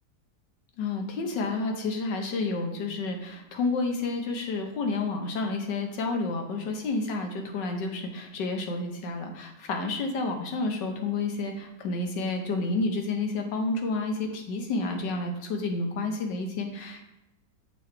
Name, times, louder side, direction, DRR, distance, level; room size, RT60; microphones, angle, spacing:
voice 1, 0.8-17.0, left 3 dB, 75° left, 4 dB, 1.6 m, -30 dB
6.8 x 5.3 x 3.3 m, 0.89 s
omnidirectional pair, 1.9 m